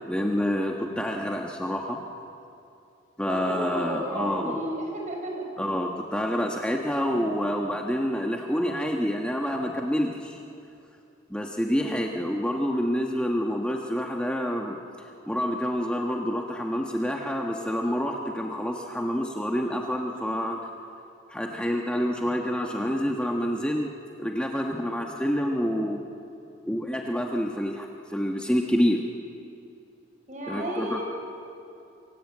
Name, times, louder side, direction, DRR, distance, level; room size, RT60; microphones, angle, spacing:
voice 1, 0.1-2.0 3.2-4.6 5.6-10.4 11.3-14.8 15.3-20.6 21.3-23.9 24.2-26.0 26.7-29.0 30.5-31.1, equal, 5° left, 1 dB, 1.3 m, -27 dB
voice 2, 3.2-5.4 11.8-12.1 30.3-31.1, right 1 dB, 40° right, 0 dB, 6.6 m, -33 dB
28.0 x 24.5 x 8.6 m, 2.7 s
head